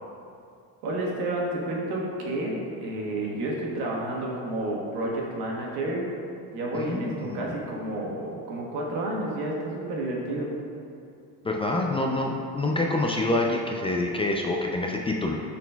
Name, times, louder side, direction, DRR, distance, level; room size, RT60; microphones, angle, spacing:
voice 1, 0.8-6.1 6.5-10.5, right 1 dB, 75° right, -2 dB, 1.4 m, -30 dB
voice 2, 6.7-7.5 11.4-15.4, left 2 dB, 15° left, 0 dB, 0.3 m, -27 dB
10.0 x 4.2 x 2.3 m, 2.5 s
supercardioid pair, 100°, 39 cm